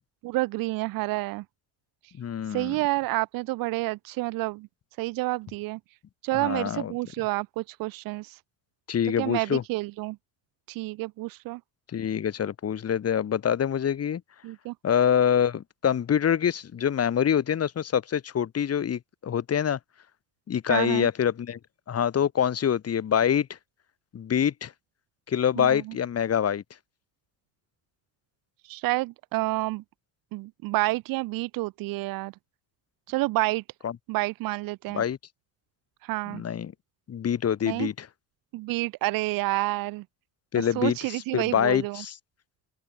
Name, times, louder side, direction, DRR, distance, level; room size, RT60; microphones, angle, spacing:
voice 1, 0.2-1.4 2.5-4.7 5.0-5.8 6.2-8.4 9.2-10.2 10.7-11.6 14.4-14.7 20.7-21.1 25.6-25.8 28.7-29.8 30.3-32.3 33.1-33.6 34.1-35.0 36.0-36.4 37.6-37.9 38.5-40.0 40.6-42.0, right 20 dB, 85° right, 0.9 m, -29 dB
voice 2, 2.2-2.8 6.3-6.9 8.9-9.6 11.9-14.2 14.8-19.8 20.5-21.6 21.9-23.6 24.1-24.7 25.3-26.6 33.8-33.9 34.9-35.2 36.3-36.7 37.1-38.1 40.5-42.2, left 8 dB, 45° left, 3.7 m, -25 dB
open air
cardioid pair, 110°, 34 cm